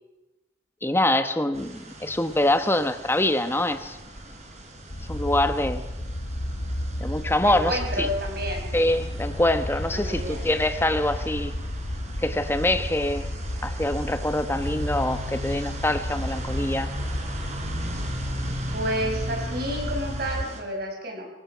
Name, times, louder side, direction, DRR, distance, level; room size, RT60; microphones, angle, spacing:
voice 1, 0.8-4.0 5.1-5.8 7.0-8.1 8.7-11.5 12.2-13.3 13.6-16.9, left 1 dB, 15° left, 9 dB, 1.2 m, -24 dB
sound 1, 1.5-20.6, right 1 dB, 40° right, 4.1 m, -39 dB
sound 2, 4.9-20.4, left 1 dB, 55° left, 1.2 m, -32 dB
voice 2, 7.4-8.7 9.9-10.4 18.7-21.3, equal, 55° right, 2 dB, 5.5 m, -30 dB
26.0 x 17.0 x 5.9 m, 1.0 s
head